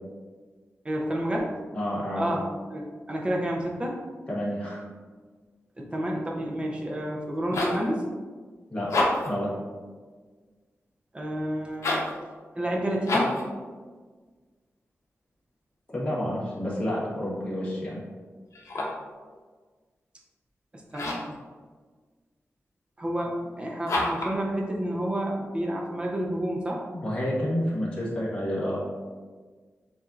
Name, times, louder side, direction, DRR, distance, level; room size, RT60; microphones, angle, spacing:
voice 1, 0.8-1.6 2.1-2.4 2.7-4.0 5.8-8.1 11.1-12.0 12.5-13.3 20.7-21.2 23.0-26.8, right 1 dB, 20° right, -2 dB, 0.6 m, -30 dB
voice 2, 1.7-2.3 4.3-4.8 8.7-8.9 9.2-9.6 15.9-18.0 26.9-28.8, equal, 25° left, -7 dB, 1.3 m, -29 dB
sound 1, 7.2-7.9 8.8-9.4 11.7-12.2 13.0-13.5 18.5-19.1 20.9-21.4 23.8-24.4, left 2 dB, 75° left, 0.8 m, -28 dB
7.2 x 2.6 x 2.4 m, 1.5 s
wide cardioid pair, 165°, 5 cm